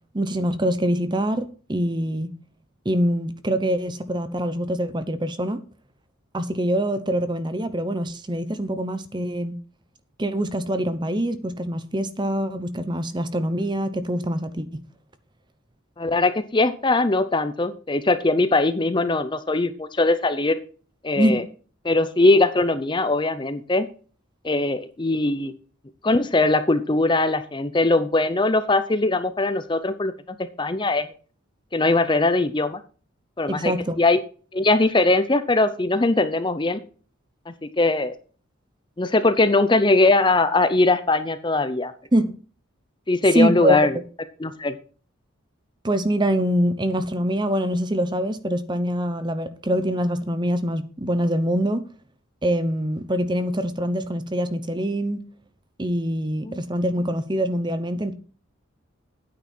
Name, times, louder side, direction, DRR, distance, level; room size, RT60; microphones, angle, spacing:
voice 1, 0.1-2.3 2.8-5.6 6.3-9.6 10.2-14.8 21.2-21.4 33.5-34.0 42.1-42.3 43.3-44.0 45.8-51.8 52.4-55.2 55.8-58.1, equal, 20° right, 0.8 m, -24 dB
voice 2, 16.0-20.6 21.0-21.4 21.8-23.9 24.4-25.5 26.0-31.1 31.7-32.8 33.4-33.7 34.0-34.2 34.5-36.8 37.5-38.2 39.0-41.9 43.1-44.0 44.4-44.8 56.4-56.5, left 2 dB, 20° left, 0.6 m, -21 dB
9.3 x 8.7 x 4.4 m
head